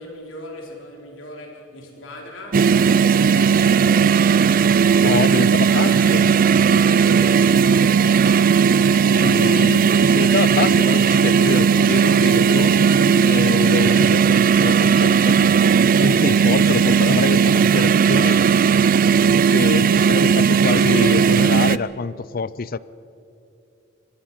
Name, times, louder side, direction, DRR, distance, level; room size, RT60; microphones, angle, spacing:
voice 1, 0.0-6.0 6.5-9.4 12.2-12.5, left 1 dB, 80° left, 0 dB, 4.3 m, -39 dB
sound 1, 2.5-21.8, right 6 dB, 45° right, 0.4 m, -16 dB
voice 2, 5.0-6.3 9.1-9.9 10.1-12.8 13.2-15.7 16.0-18.4 19.5-22.8, left 4 dB, 45° left, 19 dB, 0.5 m, -26 dB
25.0 x 20.5 x 5.7 m, 2.8 s
head